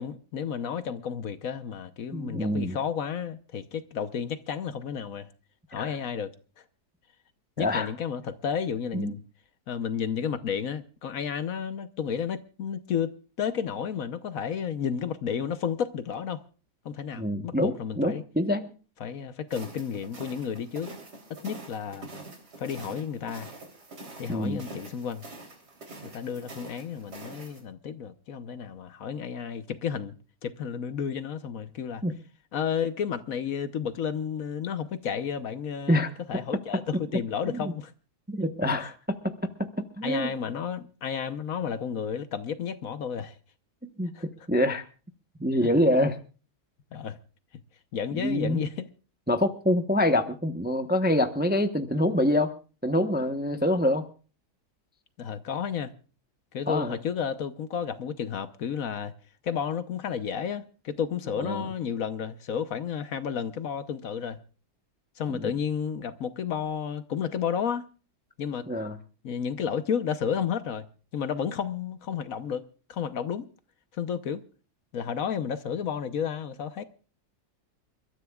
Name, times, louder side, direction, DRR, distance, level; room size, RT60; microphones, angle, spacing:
voice 1, 0.0-5.3 5.7-6.3 7.6-9.2 9.7-16.4 16.8-18.2 19.0-20.9 21.3-22.1 22.6-23.5 24.2-25.3 26.0-30.1 30.4-32.0 32.5-37.9 38.8-38.9 40.0-43.4 44.1-44.3 46.9-47.2 47.9-48.9 55.2-55.9 56.5-59.1 59.4-64.4 65.2-67.9 68.4-68.7 69.2-70.9 71.1-72.6 72.9-73.5 73.9-74.4 74.9-76.8, left 7 dB, 60° left, 1.2 m, -32 dB
voice 2, 2.1-2.8 5.7-5.9 7.6-7.9 8.9-9.2 17.2-18.7 24.3-24.6 32.0-32.1 35.9-36.1 37.5-37.7 38.3-40.3 44.0-44.1 44.5-44.8 45.4-46.2 48.1-48.6 49.3-52.5 52.8-54.0 56.7-56.9 61.4-61.6 65.3-65.5 68.7-69.0, left 1 dB, 10° right, 0.7 m, -26 dB
sound 1, 19.5-27.6, right 2 dB, 80° right, 3.9 m, -45 dB
29.0 x 13.5 x 2.3 m
omnidirectional pair, 1.7 m